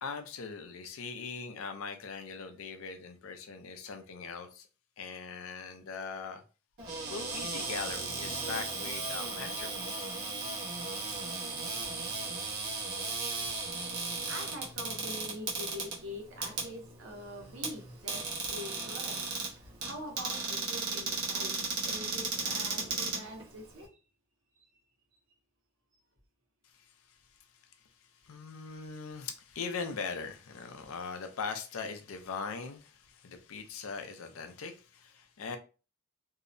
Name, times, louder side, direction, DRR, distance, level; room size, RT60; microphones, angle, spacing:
voice 1, 0.0-4.7 5.0-6.4 7.1-10.1 26.6-27.2 28.1-35.6, left 5 dB, 70° left, 0.4 m, -41 dB
Cupboard open or close, 6.8-23.8, right 3 dB, 85° right, 1.0 m, -36 dB
voice 2, 14.3-19.3 19.6-24.0 24.6-24.7, equal, 60° right, 0.7 m, -44 dB
2.7 x 2.1 x 2.5 m
head